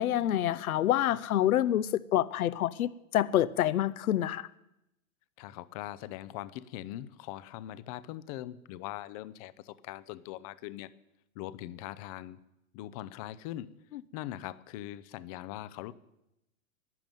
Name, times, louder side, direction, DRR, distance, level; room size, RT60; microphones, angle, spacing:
voice 1, 0.0-4.5, left 12 dB, 80° left, 0.7 m, -27 dB
voice 2, 5.4-10.9 11.4-12.4 12.7-13.7 14.1-15.9, left 14 dB, 25° left, 0.5 m, -41 dB
11.5 x 11.0 x 9.0 m
hypercardioid pair, 145°, 43 cm